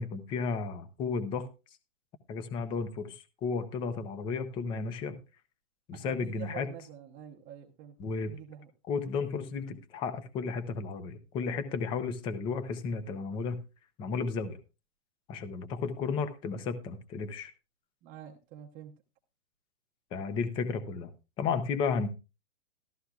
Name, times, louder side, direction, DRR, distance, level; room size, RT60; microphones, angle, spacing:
voice 1, 0.0-1.5 2.3-5.2 5.9-6.7 8.0-8.3 8.9-13.6 14.0-14.6 15.3-17.5 20.1-21.1 21.4-22.1, left 5 dB, 15° left, 12 dB, 0.6 m, -33 dB
voice 2, 5.9-8.0 8.3-8.7 18.0-18.9, right 10 dB, 20° right, 0 dB, 0.8 m, -46 dB
14.0 x 13.0 x 2.4 m, 0.29 s
hypercardioid pair, 155°, 38 cm